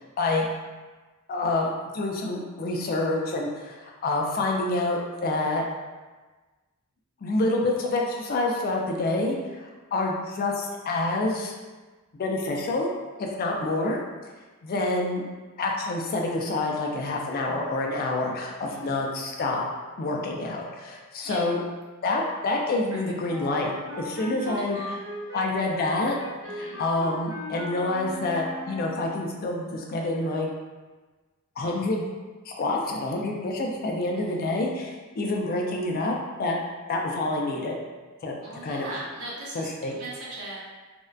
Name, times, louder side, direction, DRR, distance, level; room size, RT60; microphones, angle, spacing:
voice 1, 0.2-0.5 1.3-5.6 7.2-11.5 12.2-12.9 13.2-14.0 14.6-15.2 15.6-19.7 20.0-21.6 22.0-24.8 25.3-26.2 26.5-30.5 31.6-32.0 32.5-36.6 36.9-37.8 38.2-38.4 38.6-38.9 39.5-40.0, left 2 dB, 45° left, 0 dB, 0.3 m, -27 dB
voice 2, 18.6-19.0 21.2-21.4 24.4-25.0 26.4-26.8 34.3-34.4 38.4-40.6, right 1 dB, 80° right, -5 dB, 0.7 m, -39 dB
Wind instrument woodwind instrument, 23.3-29.2, left 1 dB, 15° right, 0.6 m, -38 dB
2.6 x 2.1 x 2.3 m, 1.3 s
head